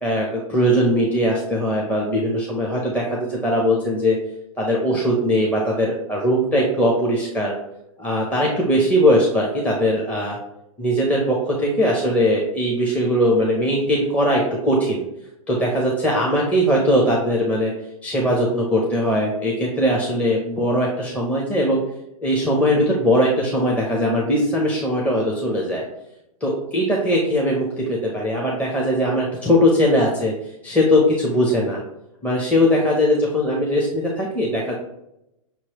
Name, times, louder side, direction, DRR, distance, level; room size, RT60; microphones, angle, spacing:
voice 1, 0.0-4.2 4.6-7.5 8.0-10.4 10.8-15.0 15.5-17.7 18.0-21.8 22.2-25.8 26.4-30.3 30.6-31.8 32.2-34.7, equal, 10° left, -3 dB, 0.8 m, -20 dB
5.9 x 3.0 x 2.9 m, 0.84 s
hypercardioid pair, 120°, 18 cm